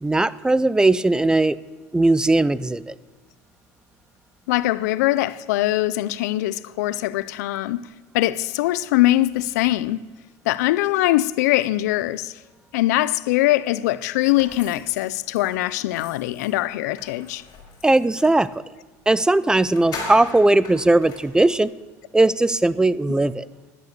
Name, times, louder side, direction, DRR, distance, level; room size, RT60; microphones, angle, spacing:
voice 1, 0.0-1.6 1.9-2.9 17.8-18.5 19.1-21.7 22.1-23.4, right 2 dB, 10° right, 0.3 m, -18 dB
voice 2, 4.5-7.8 8.1-10.1 10.5-12.3 12.7-17.4, left 16 dB, 85° left, 0.4 m, -22 dB
sound 1, 14.4-18.4 19.1-19.2 19.5-21.5, left 3 dB, 50° left, 4.4 m, -39 dB
11.0 x 10.5 x 6.7 m
supercardioid pair, 110°, 9 cm